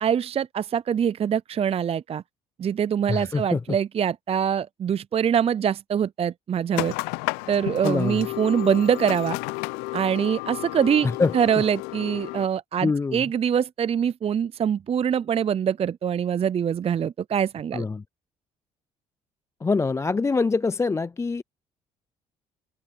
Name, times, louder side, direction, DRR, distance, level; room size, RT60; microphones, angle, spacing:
voice 1, 0.0-2.2 2.6-6.9 7.5-9.4 9.9-11.1 11.3-17.8, right 8 dB, 40° right, 0.6 m, -24 dB
voice 2, 3.1-3.6 7.8-8.2 11.0-11.4 12.8-13.3 17.7-18.0 19.6-21.4, left 4 dB, 20° left, 0.4 m, -24 dB
sound 1, 6.7-12.5, left 24 dB, 80° left, 0.7 m, -32 dB
open air
hypercardioid pair, 60°, 16 cm